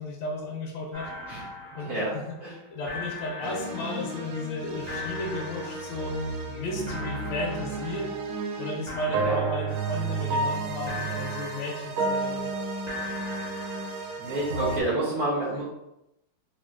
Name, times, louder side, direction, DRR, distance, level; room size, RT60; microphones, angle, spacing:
voice 1, 0.0-1.1 1.7-2.3 2.7-6.2 6.5-8.1 8.6-12.5, left 2 dB, 80° left, -1 dB, 1.3 m, -34 dB
sound 1, 0.9-2.6 2.9-4.5 4.9-6.5 6.9-8.6 8.9-10.6 10.9-12.5 12.9-14.5, left 2 dB, 35° right, 0.6 m, -41 dB
sound 2, 3.4-14.8, right 3 dB, 85° right, 0.7 m, -32 dB
voice 2, 14.2-15.6, right 1 dB, 60° right, -8 dB, 1.2 m, -28 dB
4.3 x 2.4 x 2.4 m, 0.86 s
omnidirectional pair, 2.0 m